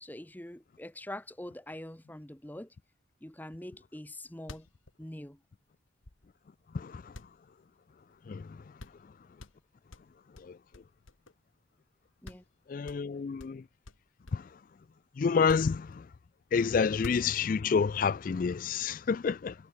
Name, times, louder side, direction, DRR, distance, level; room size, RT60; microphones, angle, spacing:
voice 1, 0.0-2.7 3.2-4.7 5.0-5.4 12.2-12.4, left 1 dB, 10° left, 1.0 m, -44 dB
sound 1, 4.1-4.2 4.4-6.6 7.1-8.2 8.5-8.6 8.8-9.1 9.4-11.5 11.9-12.0 12.2-12.5 12.8-14.6 15.3-16.3 16.9-17.7, left 2 dB, 90° left, 1.8 m, -50 dB
voice 2, 12.7-13.6 15.2-15.9 16.5-19.5, left 5 dB, 45° left, 0.3 m, -28 dB
head